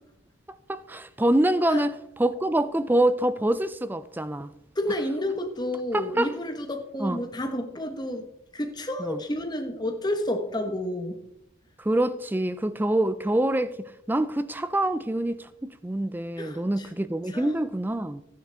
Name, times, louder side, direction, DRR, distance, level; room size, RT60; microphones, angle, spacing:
voice 1, 0.5-1.9 2.2-4.5 5.9-6.3 7.0-7.2 9.0-9.2 11.8-18.2, right 1 dB, 10° right, 0.3 m, -25 dB
voice 2, 4.8-8.3 8.5-11.2 16.4-16.9 17.3-17.5, left 1 dB, 20° left, 1.2 m, -30 dB
13.0 x 10.5 x 3.5 m
head